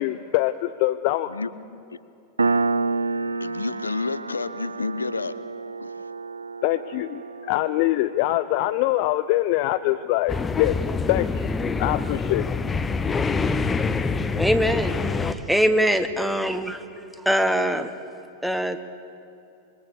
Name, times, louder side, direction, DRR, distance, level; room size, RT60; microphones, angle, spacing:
voice 1, 0.0-1.3 6.6-10.8 11.1-11.3 11.8-12.5, left 16 dB, 45° left, 10 dB, 0.5 m, -23 dB
Piano, 2.4-9.6, right 3 dB, 80° right, 0.5 m, -29 dB
voice 2, 3.4-5.3 5.8-5.9, left 3 dB, 75° left, 15 dB, 0.8 m, -30 dB
sound 1, 10.3-15.3, left 4 dB, 15° left, 1.0 m, -25 dB
voice 3, 14.3-16.8 17.2-17.9 18.4-18.8, equal, ahead, 9 dB, 1.3 m, -23 dB
26.5 x 22.5 x 6.8 m, 2.8 s
figure-of-eight pair, 90°, 0 cm